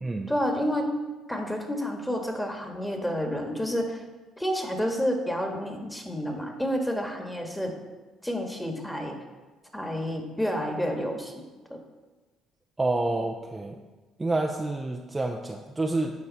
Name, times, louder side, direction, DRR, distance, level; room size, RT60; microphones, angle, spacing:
voice 1, 0.3-0.9 1.3-4.0 4.4-7.7 8.2-9.2 9.7-11.3 11.7-11.8, equal, 5° left, 2 dB, 1.9 m, -29 dB
voice 2, 12.8-13.8 14.2-16.1, right 2 dB, 20° right, 2 dB, 0.7 m, -28 dB
12.0 x 4.7 x 4.2 m, 1.2 s
hypercardioid pair, 55°, 0 cm